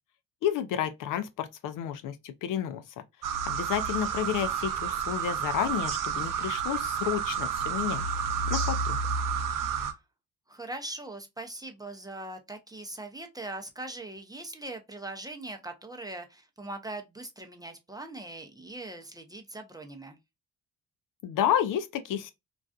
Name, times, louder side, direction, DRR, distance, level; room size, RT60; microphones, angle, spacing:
voice 1, 0.4-2.8 3.5-8.0 8.5-9.0 21.2-22.3, left 10 dB, 60° left, 0.5 m, -30 dB
sound 1, 3.2-9.9, right 6 dB, 60° right, 0.6 m, -30 dB
voice 2, 10.5-20.2, right 2 dB, 10° right, 0.5 m, -41 dB
2.4 x 2.3 x 2.2 m
supercardioid pair, 60°, 37 cm